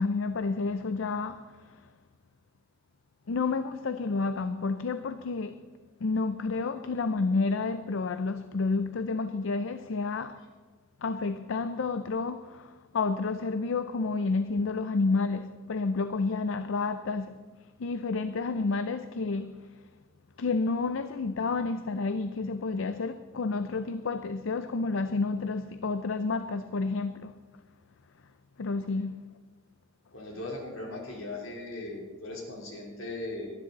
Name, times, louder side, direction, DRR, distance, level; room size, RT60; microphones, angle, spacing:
voice 1, 0.0-1.9 3.3-5.7 6.0-10.4 11.0-17.4 17.8-19.7 20.4-27.3 28.6-29.3, left 3 dB, 65° left, 0.5 m, -30 dB
voice 2, 30.1-33.5, left 2 dB, 85° left, 3.9 m, -38 dB
19.0 x 13.0 x 4.1 m
head